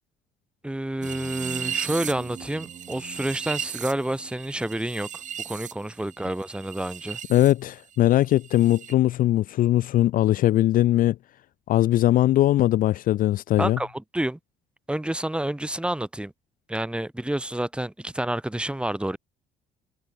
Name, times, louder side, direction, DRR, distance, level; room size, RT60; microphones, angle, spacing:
voice 1, 0.6-7.2 13.6-14.4 14.9-16.3 16.7-19.2, right 1 dB, 5° right, 2.7 m, -29 dB
sound 1, 1.0-7.5 7.8-8.9, right 9 dB, 45° right, 2.6 m, -36 dB
voice 2, 7.3-11.2 11.7-13.8, left 14 dB, 55° left, 0.4 m, -20 dB
cardioid pair, 110°, 17 cm